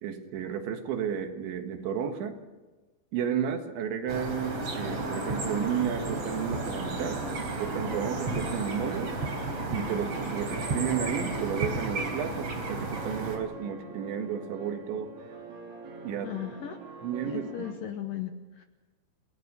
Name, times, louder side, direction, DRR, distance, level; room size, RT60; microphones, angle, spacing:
voice 1, 0.0-2.4 3.1-7.2 7.6-9.1 9.7-15.1 16.0-16.3 17.0-17.7, right 8 dB, 80° right, 6 dB, 3.9 m, -32 dB
sound 1, 4.1-13.4, right 2 dB, 35° right, 4.1 m, -33 dB
sound 2, 5.1-17.7, right 3 dB, 50° right, 4.6 m, -45 dB
voice 2, 16.2-16.8 17.3-18.6, left 10 dB, 75° left, 6 dB, 2.0 m, -37 dB
29.5 x 18.0 x 6.8 m, 1.2 s
omnidirectional pair, 5.2 m